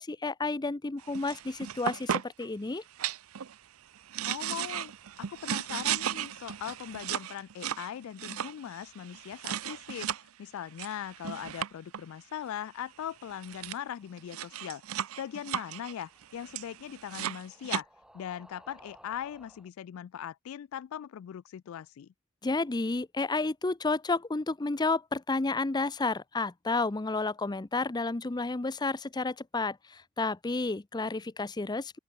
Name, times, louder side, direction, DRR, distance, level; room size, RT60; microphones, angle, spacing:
voice 1, 0.0-2.8 22.4-32.0, left 3 dB, 20° left, 0.6 m, -31 dB
sound 1, 1.0-2.4 3.0-3.5 3.9-10.2 10.8-12.0 13.0-13.1 13.3-13.8 14.2-17.8, right 9 dB, 80° right, 0.6 m, -36 dB
voice 2, 4.3-10.1 10.4-14.8 15.2-17.9 18.1-22.1, left 9 dB, 70° left, 0.3 m, -40 dB
sound 2, 13.0-19.7, right 1 dB, 5° right, 3.5 m, -61 dB
open air
head